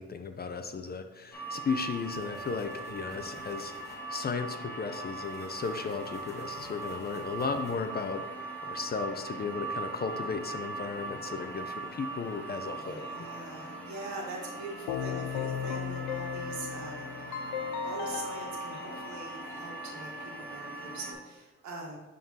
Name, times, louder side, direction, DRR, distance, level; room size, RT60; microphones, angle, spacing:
voice 1, 0.0-13.1, left 5 dB, 30° left, 8 dB, 0.5 m, -35 dB
sound 1, 1.3-21.1, right 3 dB, 5° left, 1.5 m, -40 dB
sound 2, 1.5-4.0 5.0-8.2, right 2 dB, 20° right, 1.5 m, -58 dB
voice 2, 12.7-17.5 17.8-22.0, right 3 dB, 70° right, -1 dB, 1.7 m, -43 dB
Keyboard (musical), 14.9-19.8, left 7 dB, 85° left, 0.6 m, -36 dB
10.5 x 3.8 x 2.9 m, 1.2 s
cardioid pair, 90°, 30 cm